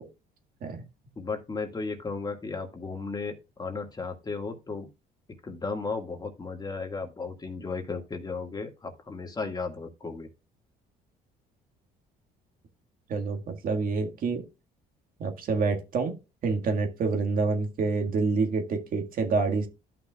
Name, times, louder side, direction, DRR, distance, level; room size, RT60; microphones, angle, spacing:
voice 1, 1.2-4.9 5.4-10.3, left 4 dB, 25° left, 1.8 m, -35 dB
voice 2, 13.1-14.4 15.2-16.1 16.4-19.7, right 4 dB, 55° right, 1.8 m, -27 dB
13.5 x 5.9 x 2.3 m
cardioid pair, 110°, 17 cm